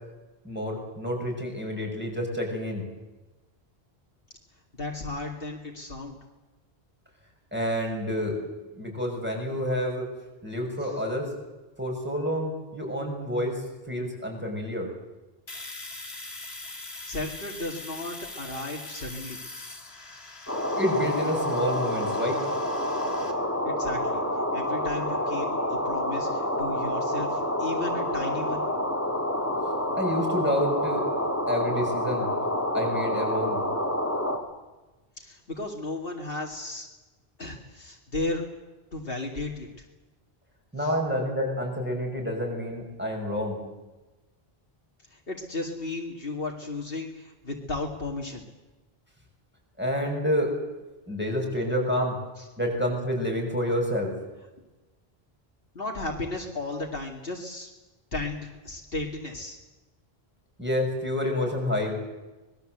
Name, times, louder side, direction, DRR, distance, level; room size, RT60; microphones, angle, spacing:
voice 1, 0.4-2.8 7.5-8.3 8.7-10.1 10.4-11.3 11.8-13.6 13.9-14.9 20.8-22.4 30.0-31.0 31.5-32.3 32.7-33.6 40.7-43.6 49.8-50.5 51.1-52.2 52.6-54.1 60.6-62.0, equal, 10° right, 0 dB, 6.5 m, -28 dB
voice 2, 4.8-6.2 10.8-11.0 17.1-19.4 23.6-24.2 24.5-28.6 35.2-36.9 37.4-38.4 38.9-39.8 40.8-41.0 45.1-48.5 52.4-52.5 55.7-57.7 58.1-59.6, left 2 dB, 65° left, 1 dB, 2.6 m, -34 dB
Domestic sounds home sounds, 15.5-23.3, left 2 dB, 80° left, 3.3 m, -42 dB
sound 1, 20.5-34.4, left 1 dB, 15° left, 3.0 m, -28 dB
25.0 x 21.0 x 8.0 m, 1.1 s
omnidirectional pair, 1.0 m